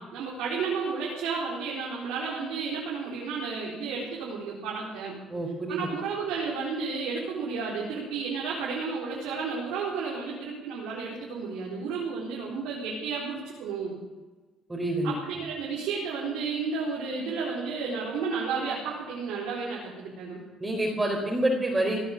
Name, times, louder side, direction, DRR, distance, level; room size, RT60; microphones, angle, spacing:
voice 1, 0.0-5.2 5.7-14.0 15.0-20.4, right 5 dB, 85° right, -6 dB, 4.5 m, -32 dB
voice 2, 5.3-5.9 14.7-15.2 20.6-22.0, right 1 dB, 20° right, -1 dB, 4.4 m, -27 dB
18.0 x 10.0 x 7.5 m, 1.3 s
supercardioid pair, 75°, 0 cm